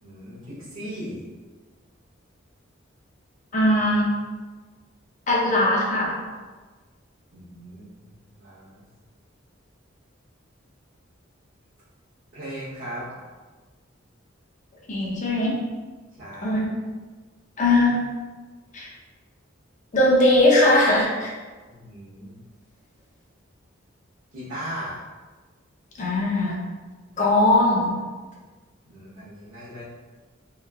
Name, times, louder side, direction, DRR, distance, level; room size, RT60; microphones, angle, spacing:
voice 1, 0.0-1.2 7.3-8.8 12.3-13.1 16.2-16.7 21.7-22.4 24.3-25.0 28.8-29.8, equal, 75° right, -14 dB, 0.9 m, -38 dB
voice 2, 3.5-4.1 5.3-6.1 14.9-15.6 16.4-16.7 17.6-18.0 18.7-18.9 19.9-21.3 26.0-26.6 27.2-27.9, left 1 dB, 40° left, -3 dB, 0.5 m, -20 dB
2.9 x 2.3 x 2.3 m, 1.3 s
head